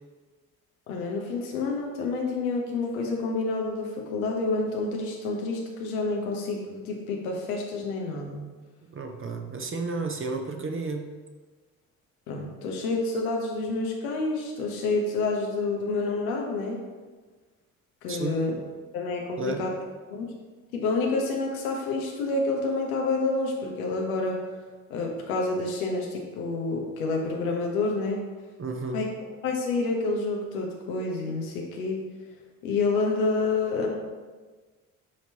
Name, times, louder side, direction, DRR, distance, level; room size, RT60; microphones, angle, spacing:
voice 1, 0.9-8.4 12.3-16.8 18.0-18.6 18.9-19.7 20.1-20.3 20.7-24.4 24.9-28.2 28.9-29.0 29.4-32.0 32.6-33.9, left 3 dB, 80° left, 0 dB, 1.1 m, -28 dB
voice 2, 8.9-11.1 18.1-18.4 19.4-19.7 28.6-29.0, right 3 dB, 30° right, 4 dB, 1.0 m, -32 dB
9.2 x 4.5 x 2.9 m, 1.4 s
hypercardioid pair, 50°, 42 cm